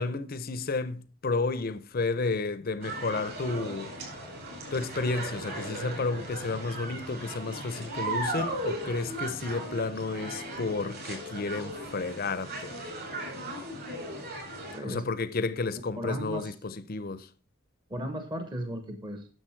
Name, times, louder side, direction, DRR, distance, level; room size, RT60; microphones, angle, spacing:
voice 1, 0.0-3.9 4.7-12.8 14.8-17.3, left 3 dB, 45° left, 0.6 m, -32 dB
sound 1, 2.8-14.8, right 1 dB, 45° right, 4.8 m, -37 dB
voice 2, 14.7-15.1 16.0-16.5 17.9-19.3, equal, 20° right, 1.0 m, -35 dB
9.9 x 7.0 x 4.5 m
head